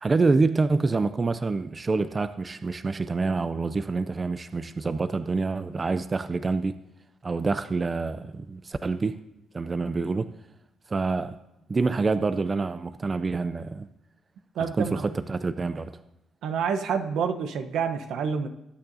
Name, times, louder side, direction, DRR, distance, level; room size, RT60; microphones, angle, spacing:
voice 1, 0.0-6.8 7.2-9.2 9.5-10.3 10.9-11.4 11.7-13.9 14.8-16.0, right 3 dB, 30° right, 12 dB, 0.4 m, -26 dB
voice 2, 14.6-15.0 16.4-18.5, right 6 dB, 80° right, 7 dB, 0.9 m, -28 dB
19.5 x 8.8 x 2.7 m, 0.91 s
cardioid pair, 90°, 0 cm